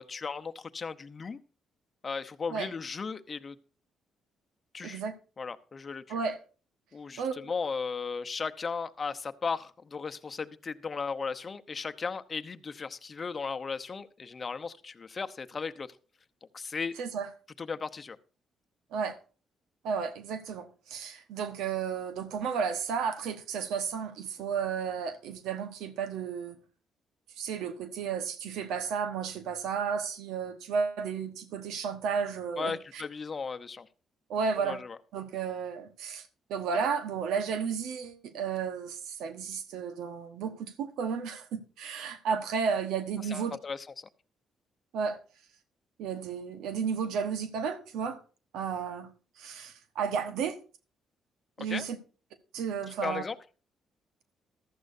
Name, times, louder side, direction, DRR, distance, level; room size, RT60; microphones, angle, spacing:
voice 1, 0.0-1.4 2.0-3.5 4.7-5.0 5.4-6.2 6.9-16.0 16.5-17.0 17.6-18.2 32.6-33.9 34.6-35.0 43.2-44.1 51.6-51.9 53.0-53.4, left 5 dB, 35° left, 0.8 m, -36 dB
voice 2, 4.8-5.1 6.1-6.4 7.2-7.3 17.0-17.3 18.9-19.2 19.8-26.6 27.4-32.8 34.3-34.8 35.1-43.6 44.9-45.2 46.0-48.2 48.5-49.1 49.4-50.6 51.6-52.0 52.5-53.2, right 6 dB, 90° right, 1.2 m, -33 dB
14.5 x 12.5 x 2.7 m
cardioid pair, 90°, 0 cm